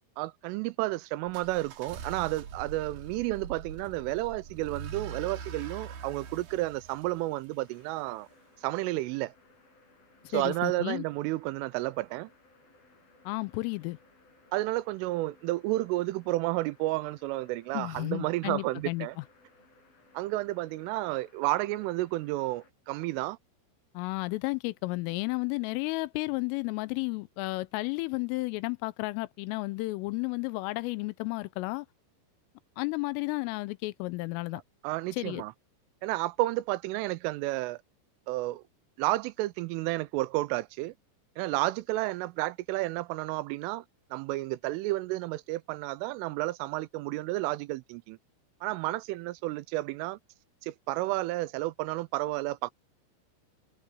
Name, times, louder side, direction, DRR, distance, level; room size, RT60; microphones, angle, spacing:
voice 1, 0.2-8.3 8.6-9.3 10.3-12.3 14.5-19.2 20.1-23.4 34.8-35.5 36.0-37.8 38.3-38.6 39.0-40.9 41.4-43.8 44.1-48.2 48.6-50.2 50.6-52.7, right 18 dB, 85° right, 3.1 m, -31 dB
sound 1, 1.3-8.2, right 7 dB, 55° right, 3.6 m, -43 dB
sound 2, 7.7-22.7, left 2 dB, 45° left, 9.6 m, -62 dB
voice 2, 10.3-11.0 13.3-14.0 17.7-19.2 23.9-31.9 32.8-34.6 35.1-35.4, left 23 dB, 85° left, 3.3 m, -32 dB
omnidirectional pair, 5.8 m